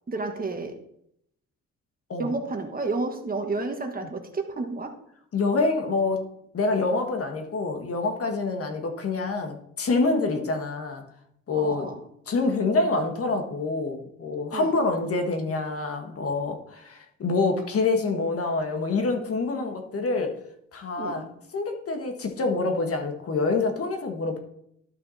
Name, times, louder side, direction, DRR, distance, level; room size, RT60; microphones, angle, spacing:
voice 1, 0.1-0.8 2.2-5.0 10.3-10.5 11.5-12.0 14.5-14.7 21.0-21.3, right 3 dB, 30° right, 5 dB, 1.4 m, -31 dB
voice 2, 5.3-6.3 6.5-11.0 11.5-11.9 12.3-20.4 20.7-21.3 21.5-24.4, left 3 dB, 50° left, 4 dB, 1.6 m, -26 dB
12.0 x 5.7 x 4.1 m, 0.73 s
cardioid pair, 90°, 30 cm